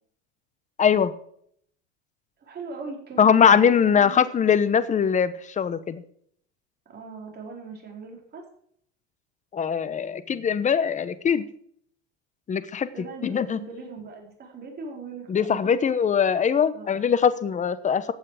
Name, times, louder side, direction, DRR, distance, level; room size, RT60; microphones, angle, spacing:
voice 1, 0.8-1.1 3.2-6.0 9.5-11.4 12.5-13.6 15.3-18.1, left 7 dB, 20° left, 15 dB, 1.0 m, -21 dB
voice 2, 2.4-4.3 6.9-8.4 12.9-15.7 16.7-17.0, right 4 dB, 25° right, 1 dB, 4.8 m, -40 dB
15.5 x 8.5 x 5.0 m, 0.65 s
supercardioid pair, 130°, 37 cm